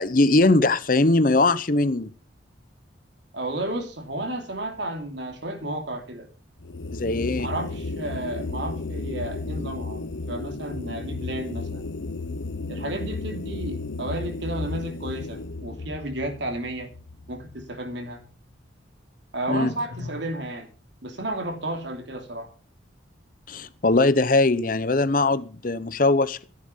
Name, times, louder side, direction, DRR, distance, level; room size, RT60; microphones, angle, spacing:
voice 1, 0.0-2.1 6.9-7.5 19.5-19.7 23.5-26.4, left 2 dB, 45° left, 0.8 m, -21 dB
voice 2, 3.3-6.3 7.4-11.8 12.7-16.9 17.3-18.2 19.3-20.7 21.0-22.5, right 1 dB, 65° right, 2.9 m, -32 dB
sound 1, 6.6-17.9, left 3 dB, 75° left, 1.0 m, -34 dB
14.0 x 10.5 x 5.6 m
head